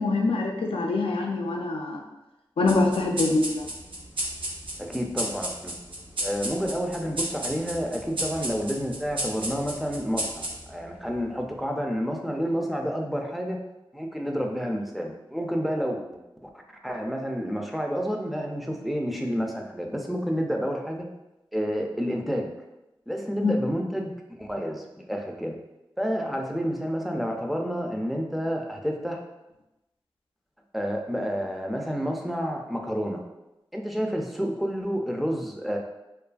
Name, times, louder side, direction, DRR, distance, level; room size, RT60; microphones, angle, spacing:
voice 1, 0.0-2.0 2.6-3.7 23.4-23.5, left 3 dB, 85° left, 1 dB, 0.4 m, -24 dB
sound 1, 2.7-11.6, right 1 dB, 70° right, 0.6 m, -34 dB
voice 2, 4.8-5.8 6.2-13.6 13.9-16.0 16.4-16.5 16.8-21.1 21.5-22.5 23.1-24.1 24.4-25.6 26.0-29.2 30.7-33.2 33.7-35.8, equal, ahead, 1 dB, 0.4 m, -29 dB
2.6 x 2.4 x 2.3 m, 0.95 s
cardioid pair, 40°, 9 cm